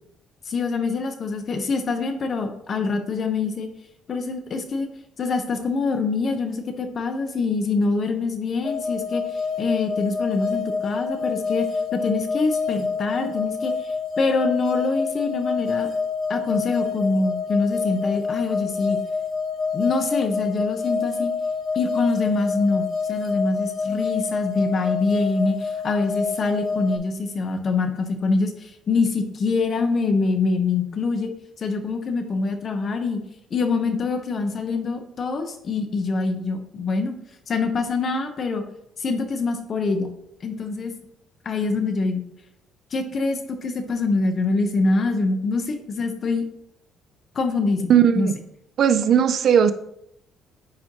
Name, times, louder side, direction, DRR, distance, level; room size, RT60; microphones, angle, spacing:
voice 1, 0.5-3.7 4.1-4.9 5.2-11.7 11.9-13.7 14.2-15.9 16.3-19.0 19.7-21.3 21.7-31.3 31.6-33.2 33.5-37.1 37.5-38.6 39.0-40.1 40.4-40.9 41.4-42.2 42.9-46.5 47.3-48.3, left 3 dB, 35° left, 7 dB, 0.8 m, -24 dB
sound 1, 8.6-27.0, left 5 dB, 60° left, 1.8 m, -27 dB
voice 2, 47.9-48.4 48.8-49.7, right 8 dB, 50° right, 12 dB, 0.3 m, -17 dB
9.7 x 4.3 x 2.9 m, 0.77 s
cardioid pair, 160°, 0 cm